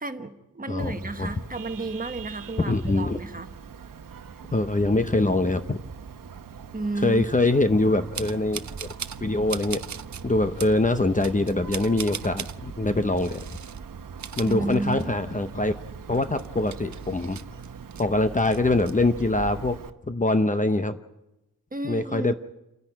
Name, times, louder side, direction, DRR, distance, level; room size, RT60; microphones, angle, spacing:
voice 1, 0.0-3.5 6.7-7.2 14.4-15.2 21.7-22.3, right 2 dB, 25° right, 7 dB, 1.2 m, -32 dB
voice 2, 0.7-1.3 2.7-3.2 4.5-5.8 7.0-8.6 9.2-9.8 10.2-13.4 14.4-15.7 16.1-17.4 18.0-19.8 20.1-21.0 21.8-22.3, left 2 dB, 25° left, 9 dB, 0.7 m, -23 dB
Vehicle horn car horn honking, 0.8-19.9, right 6 dB, 75° right, 1.0 m, -41 dB
sound 1, 8.1-9.2 9.5-10.2 10.6-10.8 11.2-12.6 13.2-13.8 14.1-15.3 15.6-15.7 16.1-18.0 18.4-18.9, right 7 dB, 55° right, 0.7 m, -38 dB
28.5 x 10.5 x 9.0 m, 0.94 s
wide cardioid pair, 125°, 33 cm